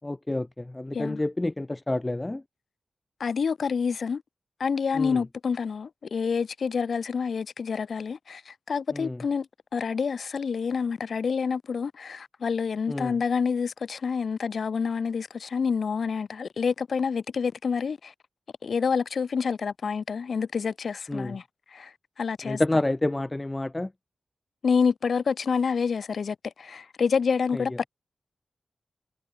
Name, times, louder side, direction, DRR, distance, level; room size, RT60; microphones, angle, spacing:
voice 1, 0.0-2.4 4.9-5.3 8.9-9.2 12.9-13.2 21.1-21.4 22.4-23.9 27.5-27.8, left 2 dB, 20° left, 6.8 m, -29 dB
voice 2, 3.2-4.2 4.6-9.5 9.7-18.1 18.6-21.4 21.7-21.9 22.2-22.6 24.6-27.8, left 5 dB, 80° left, 1.7 m, -28 dB
wide cardioid pair, 85°, 0 cm